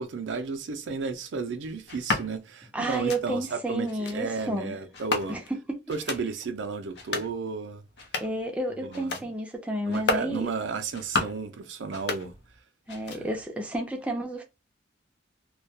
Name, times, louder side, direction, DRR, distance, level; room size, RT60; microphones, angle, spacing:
voice 1, 0.0-5.4 5.9-7.8 8.8-9.2 9.8-12.3 13.1-13.3, right 4 dB, 80° right, 0.4 m, -33 dB
sound 1, 1.9-2.3 2.9-3.2 3.9-4.2 4.9-5.6 5.9-6.2 6.9-7.3 7.9-8.4 8.9-9.3 9.9-10.3 10.9-11.4 11.9-12.6 12.9-13.4, left 3 dB, 60° left, 0.5 m, -32 dB
voice 2, 2.7-4.8 5.3-5.8 8.2-10.5 12.9-14.4, right 1 dB, 5° right, 0.4 m, -31 dB
2.2 x 2.1 x 2.7 m
head